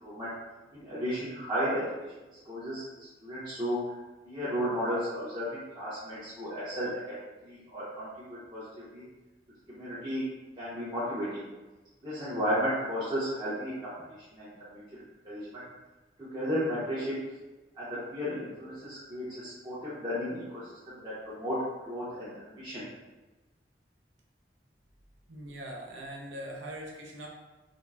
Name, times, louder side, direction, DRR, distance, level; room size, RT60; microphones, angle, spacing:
voice 1, 0.7-1.8 2.4-3.8 4.3-7.1 7.4-8.6 8.9-9.0 9.7-10.2 10.6-11.5 12.0-13.9 14.4-15.6 16.2-17.2 17.8-21.6 21.9-22.8, equal, 25° right, -11 dB, 0.6 m, -34 dB
voice 2, 25.3-27.3, right 1 dB, 90° right, -1 dB, 0.6 m, -41 dB
3.7 x 2.0 x 2.2 m, 1.1 s
head